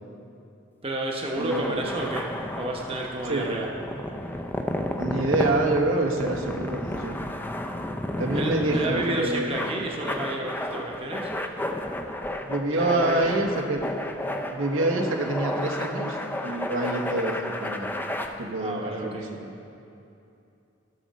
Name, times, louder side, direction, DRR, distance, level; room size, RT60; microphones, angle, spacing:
voice 1, 0.8-2.3 2.6-3.7 8.3-11.3 12.7-13.4 18.6-19.3, right 2 dB, 30° right, 0 dB, 0.8 m, -31 dB
sound 1, 1.2-18.3, left 1 dB, 10° left, 0.4 m, -32 dB
voice 2, 1.4-1.8 3.3-3.6 5.0-7.2 8.2-9.6 12.4-13.9 14.4-17.9 18.4-19.6, right 2 dB, 90° right, 0 dB, 1.2 m, -27 dB
15.5 x 6.3 x 4.1 m, 2.7 s
head